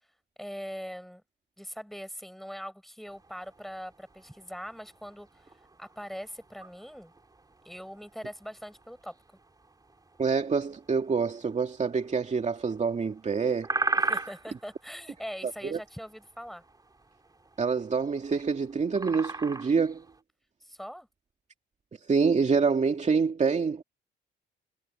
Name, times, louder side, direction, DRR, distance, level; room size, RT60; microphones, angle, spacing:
voice 1, 0.4-1.2 1.6-7.1 7.7-9.2 14.0-16.6 20.6-21.1, equal, ahead, 6.9 m, -42 dB
sound 1, 3.1-20.2, right 3 dB, 20° right, 3.0 m, -40 dB
voice 2, 10.2-13.7 15.4-15.8 17.6-20.0 22.1-23.8, right 5 dB, 35° right, 2.5 m, -26 dB
cardioid pair, 90°, 20 cm